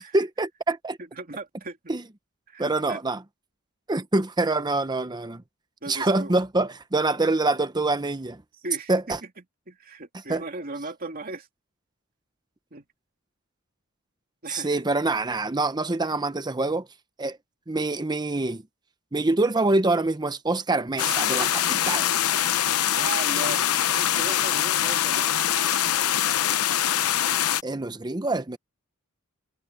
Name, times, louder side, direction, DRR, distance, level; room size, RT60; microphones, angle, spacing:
voice 1, 0.0-1.0 1.9-2.0 2.6-3.2 3.9-5.4 5.9-8.4 8.9-9.2 10.3-10.4 14.5-16.9 17.2-17.4 17.7-18.6 19.1-22.1 27.6-28.6, right 2 dB, 20° right, 0.8 m, -25 dB
voice 2, 1.1-1.8 2.5-3.0 5.8-6.3 8.6-8.9 9.7-11.5 12.7-12.8 14.4-14.8 22.9-25.4, right 3 dB, 40° right, 2.7 m, -37 dB
sound 1, 21.0-27.6, left 11 dB, 80° left, 0.8 m, -23 dB
head